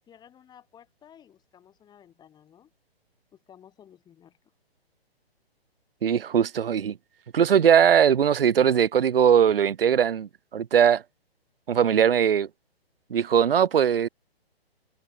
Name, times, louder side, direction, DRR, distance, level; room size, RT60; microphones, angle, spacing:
voice 1, 0.1-2.7 3.3-4.4, left 9 dB, 15° left, 4.6 m, -54 dB
voice 2, 6.0-6.9 7.3-11.0 11.7-12.5 13.1-14.1, right 8 dB, 65° right, 0.6 m, -20 dB
figure-of-eight pair, 125°, 31 cm